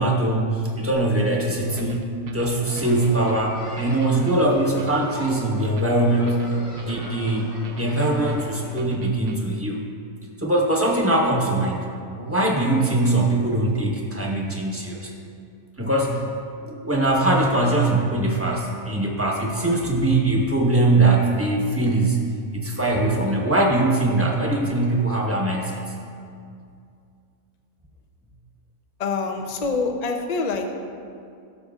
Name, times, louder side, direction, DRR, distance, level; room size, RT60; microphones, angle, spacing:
voice 1, 0.0-2.0 2.3-6.4 6.8-7.5 7.8-9.8 10.4-15.1 15.8-16.2 16.6-22.2 22.5-25.8, right 2 dB, 10° right, -2 dB, 1.0 m, -22 dB
sound 1, 1.8-9.7, right 4 dB, 65° right, 0.5 m, -40 dB
sound 2, 2.5-8.8, left 1 dB, 75° left, 2.6 m, -40 dB
voice 2, 29.0-30.7, left 4 dB, 50° left, 4 dB, 0.4 m, -25 dB
16.0 x 6.6 x 2.4 m, 2.4 s
omnidirectional pair, 1.6 m